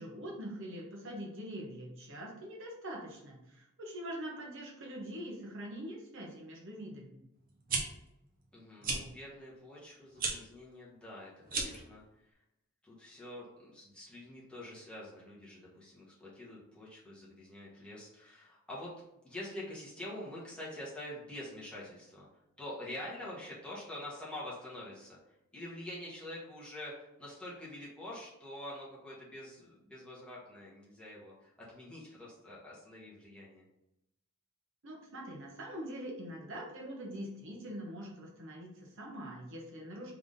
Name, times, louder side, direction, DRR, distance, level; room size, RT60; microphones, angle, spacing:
voice 1, 0.0-7.2 34.8-40.1, equal, 65° right, -1 dB, 1.1 m, -43 dB
sound 1, 7.5-7.8 8.8-9.0 10.1-10.3 11.4-11.8, right 4 dB, 45° right, 0.8 m, -33 dB
voice 2, 8.5-12.3 12.8-18.9 19.2-22.3 22.6-25.2 25.5-33.6, left 1 dB, 5° left, -7 dB, 1.4 m, -46 dB
3.6 x 3.5 x 3.8 m, 0.86 s
head